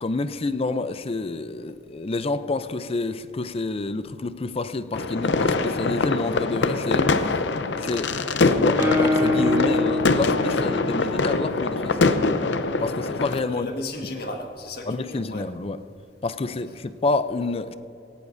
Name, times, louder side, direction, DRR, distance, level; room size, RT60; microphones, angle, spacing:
voice 1, 0.0-7.1 7.8-8.1 8.4-12.1 12.8-13.7 14.9-15.8 16.2-17.7, left 3 dB, 35° left, 0.5 m, -28 dB
sound 1, 4.9-13.4, left 3 dB, 80° left, 0.6 m, -23 dB
Guitar, 8.8-12.4, left 1 dB, 15° right, 3.4 m, -26 dB
voice 2, 13.5-15.5, left 1 dB, 60° left, 1.6 m, -34 dB
18.0 x 17.0 x 2.6 m
head